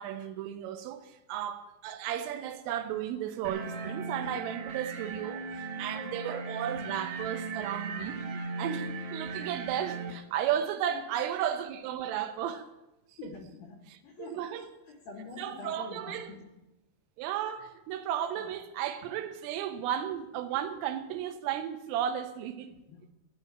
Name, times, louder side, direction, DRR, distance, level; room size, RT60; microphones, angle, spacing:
voice 1, 0.0-12.7 13.1-13.3 13.9-14.7 15.4-16.4 17.2-22.7, right 10 dB, 90° right, 3.5 m, -34 dB
sound 1, 3.4-10.1, right 4 dB, 70° right, 2.1 m, -37 dB
voice 2, 13.2-14.4 14.9-16.6 18.4-18.5 22.9-23.1, left 4 dB, 65° left, 2.4 m, -46 dB
15.0 x 9.4 x 7.3 m
omnidirectional pair, 5.7 m